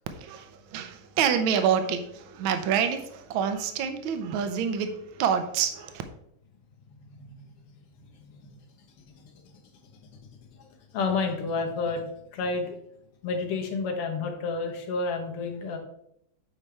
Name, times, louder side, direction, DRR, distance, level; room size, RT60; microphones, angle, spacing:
voice 1, 0.1-6.0, right 7 dB, 70° right, 1.4 m, -27 dB
voice 2, 8.0-8.5 9.2-9.3 10.6-10.7 10.9-12.0 12.3-12.8 13.2-15.8, left 4 dB, 85° left, 2.0 m, -30 dB
8.3 x 4.9 x 3.3 m
omnidirectional pair, 2.4 m